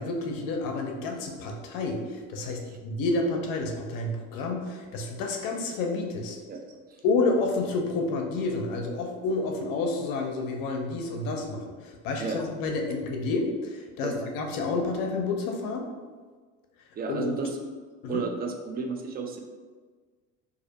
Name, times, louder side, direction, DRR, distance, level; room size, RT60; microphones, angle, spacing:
voice 1, 0.0-6.4 7.0-15.9 17.1-17.4 18.0-18.3, left 3 dB, 60° left, 2 dB, 0.6 m, -29 dB
voice 2, 17.0-17.5 18.1-19.4, right 4 dB, 25° right, 3 dB, 0.4 m, -32 dB
2.4 x 2.0 x 2.8 m, 1.4 s
hypercardioid pair, 70°, 38 cm